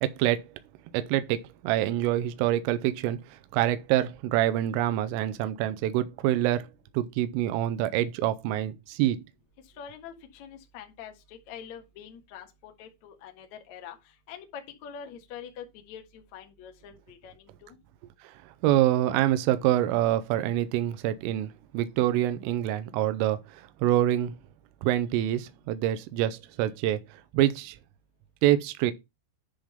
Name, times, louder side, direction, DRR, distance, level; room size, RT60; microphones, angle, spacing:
voice 1, 0.0-0.4 0.9-6.7 6.9-9.2 18.2-18.3 18.6-24.3 24.8-27.0 27.3-27.8 28.4-28.9, right 13 dB, 85° right, 3.3 m, -26 dB
voice 2, 9.8-13.9 14.3-17.8, left 8 dB, 85° left, 1.6 m, -45 dB
10.5 x 3.6 x 5.6 m
omnidirectional pair, 5.8 m